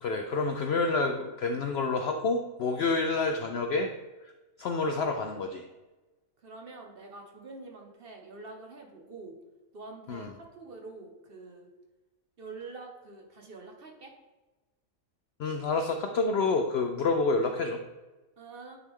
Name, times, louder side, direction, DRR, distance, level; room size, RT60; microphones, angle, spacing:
voice 1, 0.0-3.9 4.2-4.3 4.6-5.7 10.1-10.3 15.4-17.8, left 3 dB, 70° left, 4 dB, 0.6 m, -28 dB
voice 2, 6.4-9.4 9.7-11.7 12.4-14.1 18.4-18.8, right 3 dB, 50° right, 2 dB, 0.9 m, -46 dB
9.5 x 3.3 x 3.6 m, 1.2 s
omnidirectional pair, 1.5 m